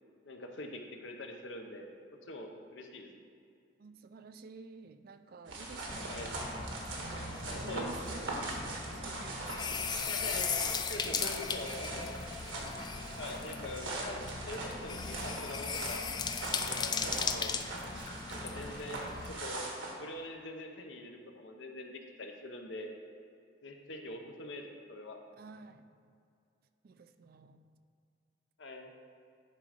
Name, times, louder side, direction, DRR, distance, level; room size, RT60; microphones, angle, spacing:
voice 1, 0.2-2.0 2.2-3.1 6.1-6.3 7.4-7.9 10.0-10.5 10.9-12.2 13.2-16.1 16.5-17.6 18.3-19.7 20.0-22.9 23.6-25.2 28.6-28.9, left 2 dB, 75° left, 3 dB, 0.8 m, -44 dB
voice 2, 3.8-6.5 6.9-9.6 10.6-12.1 25.4-25.9 26.8-27.6, right 4 dB, 50° right, 10 dB, 0.4 m, -51 dB
sound 1, 5.5-19.9, right 2 dB, 85° right, 1.4 m, -41 dB
sound 2, 5.9-19.4, left 5 dB, 20° left, 0.3 m, -38 dB
10.5 x 3.8 x 5.1 m, 2.3 s
head